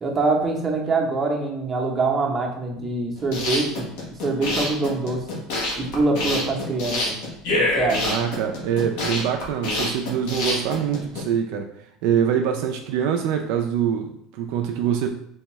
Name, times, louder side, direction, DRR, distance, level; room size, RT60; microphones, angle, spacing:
voice 1, 0.0-5.3 5.8-7.2 7.5-8.2, right 3 dB, 20° right, 0 dB, 0.7 m, -24 dB
sound 1, 3.2-11.2, left 2 dB, 85° left, 1.0 m, -26 dB
voice 2, 8.0-11.7 12.0-15.1, right 8 dB, 70° right, 3 dB, 0.3 m, -24 dB
3.4 x 2.3 x 3.0 m, 0.73 s
supercardioid pair, 135°, 0 cm